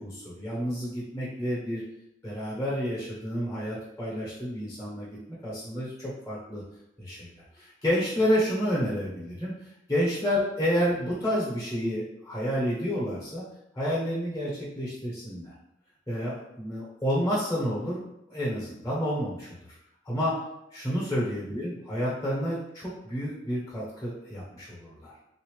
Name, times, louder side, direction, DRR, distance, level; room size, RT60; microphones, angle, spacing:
voice 1, 0.0-1.8 2.2-5.2 5.4-6.6 7.0-7.3 7.6-9.5 9.9-13.5 13.7-15.5 16.1-18.0 18.3-19.5 20.0-20.4 20.7-25.1, equal, 15° left, -5 dB, 1.0 m, -29 dB
3.6 x 2.8 x 3.1 m, 0.81 s
head